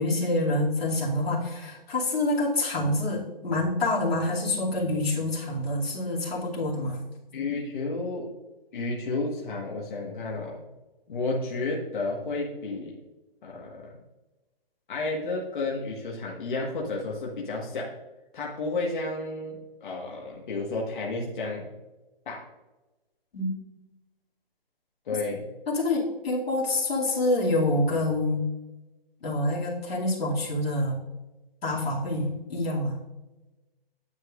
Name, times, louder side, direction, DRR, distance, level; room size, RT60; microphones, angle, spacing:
voice 1, 0.0-7.0 23.3-23.5 25.7-28.4 29.2-31.0 31.6-33.0, left 1 dB, 85° left, -4 dB, 2.7 m, -27 dB
voice 2, 7.3-8.3 8.7-10.6 11.1-12.9 13.4-13.9 14.9-17.9 18.3-21.7 22.2-22.4 25.0-25.4, left 3 dB, 55° left, -3 dB, 1.6 m, -31 dB
9.9 x 7.4 x 2.5 m, 1.1 s
hypercardioid pair, 165°, 30 cm